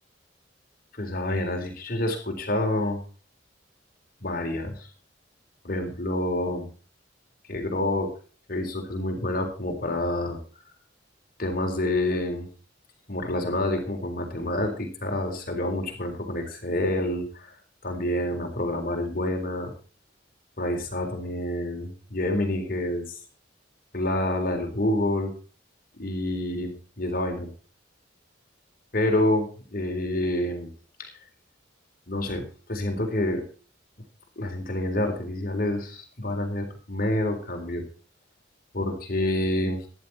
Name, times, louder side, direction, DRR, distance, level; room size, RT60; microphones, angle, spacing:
voice 1, 0.9-3.0 4.2-4.9 5.6-6.7 7.5-8.1 8.5-10.4 11.4-12.5 13.1-17.5 17.8-19.7 20.6-23.2 23.9-25.3 26.0-26.7 27.0-27.5 28.9-30.7 31.0-31.1 32.1-33.4 34.4-37.8 38.7-39.8, left 1 dB, 50° left, 3 dB, 3.9 m, -28 dB
14.0 x 11.0 x 4.3 m, 0.37 s
head